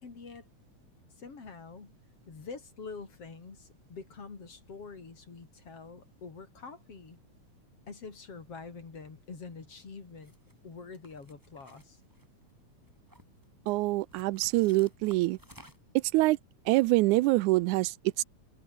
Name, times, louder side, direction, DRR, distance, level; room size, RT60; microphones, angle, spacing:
voice 1, 0.0-0.5 1.2-2.0 2.3-7.2 7.9-10.3 10.6-12.0, left 4 dB, 50° left, 4.9 m, -46 dB
sound 1, 10.2-10.5 11.0-12.5 12.9-13.5 14.1-16.0, equal, 5° right, 6.8 m, -56 dB
voice 2, 13.7-15.4 16.1-16.4 16.7-18.2, right 19 dB, 85° right, 2.1 m, -25 dB
omnidirectional pair, 3.4 m